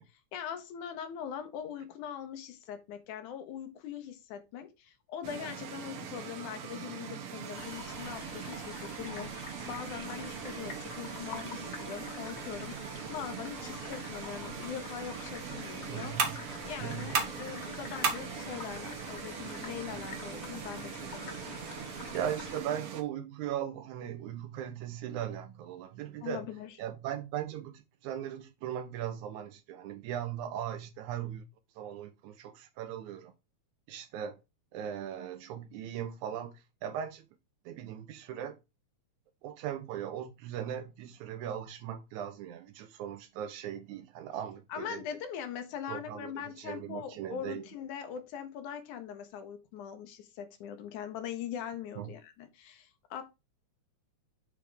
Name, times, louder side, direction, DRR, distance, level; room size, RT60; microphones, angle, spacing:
voice 1, 0.3-16.1 16.6-21.6 26.2-26.7 44.7-53.2, left 9 dB, 90° left, 2.5 m, -42 dB
sound 1, 5.2-23.0, right 7 dB, 60° right, 1.7 m, -42 dB
sound 2, 7.5-22.6, left 4 dB, 55° left, 0.9 m, -47 dB
voice 2, 15.9-16.4 16.8-17.3 22.1-26.5 26.8-31.5 31.8-33.3 33.9-34.4 34.7-37.3 37.7-38.6 39.4-45.0 45.9-47.6 52.0-52.1, right 10 dB, 80° right, 2.1 m, -38 dB
sound 3, 16.2-21.7, right 4 dB, 45° right, 1.5 m, -38 dB
7.6 x 3.4 x 5.0 m
omnidirectional pair, 3.4 m